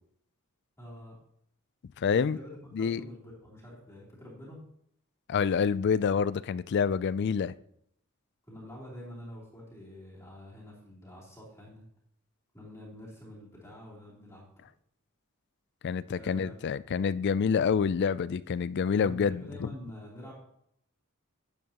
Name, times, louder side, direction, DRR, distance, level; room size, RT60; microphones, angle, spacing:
voice 1, 0.8-1.2 2.1-4.6 8.5-11.9 12.5-14.5 16.1-16.6 18.9-20.3, equal, 15° left, 3.2 m, -46 dB
voice 2, 2.0-2.4 2.7-3.0 5.3-7.5 15.8-19.7, left 6 dB, 50° left, 0.3 m, -27 dB
10.5 x 10.0 x 3.0 m
head